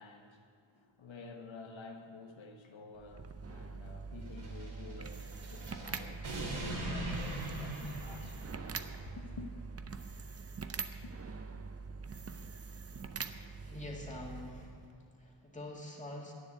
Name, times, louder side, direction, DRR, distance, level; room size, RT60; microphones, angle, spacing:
voice 1, 0.0-8.4 9.2-9.5 11.0-11.1, left 4 dB, 75° left, 3 dB, 1.1 m, -51 dB
sound 1, 2.9-14.9, right 4 dB, 30° right, 0.6 m, -44 dB
sound 2, 4.3-9.0, right 1 dB, 90° right, 2.8 m, -41 dB
voice 2, 13.6-16.3, left 1 dB, 15° left, -2 dB, 2.2 m, -46 dB
11.0 x 9.6 x 7.9 m, 2.6 s
wide cardioid pair, 130°, 46 cm